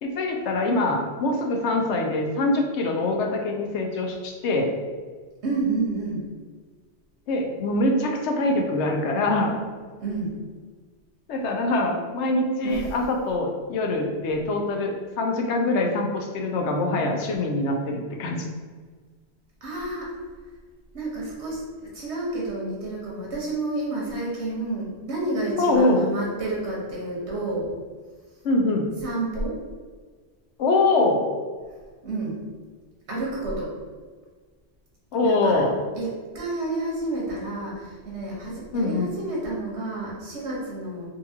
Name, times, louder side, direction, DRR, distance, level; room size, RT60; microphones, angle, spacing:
voice 1, 0.0-4.7 7.3-9.6 11.3-18.5 25.6-26.1 28.4-28.9 30.6-31.3 35.1-35.8 38.7-39.1, left 2 dB, 85° left, 2 dB, 0.9 m, -24 dB
voice 2, 5.4-6.2 10.0-10.3 12.6-12.9 19.6-20.1 20.9-27.7 29.0-29.6 32.0-32.4 33.1-33.7 35.2-35.6 35.9-41.1, right 2 dB, 85° right, -4 dB, 1.3 m, -30 dB
3.8 x 2.5 x 2.8 m, 1.5 s
omnidirectional pair, 1.1 m